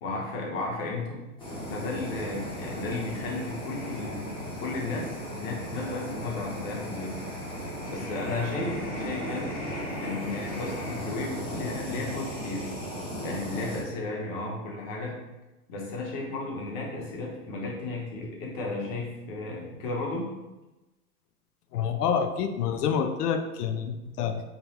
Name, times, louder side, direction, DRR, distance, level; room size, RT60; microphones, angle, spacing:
voice 1, 0.0-1.2 1.7-7.2 7.9-9.6 10.0-12.7 13.2-15.1 15.7-20.3, left 3 dB, 40° left, -2 dB, 1.0 m, -34 dB
Fire, 1.4-13.8, equal, 10° left, 0.7 m, -36 dB
voice 2, 21.7-24.4, left 7 dB, 80° left, 7 dB, 0.6 m, -27 dB
3.9 x 2.2 x 4.1 m, 1.1 s
hypercardioid pair, 145°, 46 cm